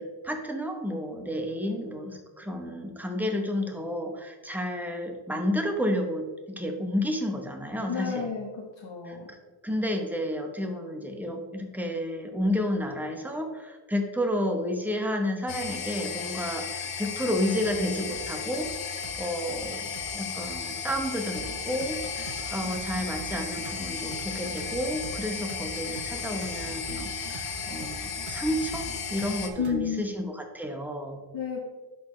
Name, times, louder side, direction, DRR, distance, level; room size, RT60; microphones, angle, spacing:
voice 1, 0.0-8.3 9.1-9.4 9.6-18.7 19.1-28.8 29.1-31.2, left 1 dB, 5° right, 2 dB, 1.0 m, -31 dB
voice 2, 7.9-9.3 29.6-30.1 31.3-31.7, left 7 dB, 65° left, -2 dB, 1.3 m, -32 dB
sound 1, 15.5-29.5, left 6 dB, 85° left, 0.9 m, -35 dB
sound 2, 17.3-29.8, right 4 dB, 75° right, 1.0 m, -44 dB
11.0 x 4.2 x 3.2 m, 1.2 s
cardioid pair, 105°, 48 cm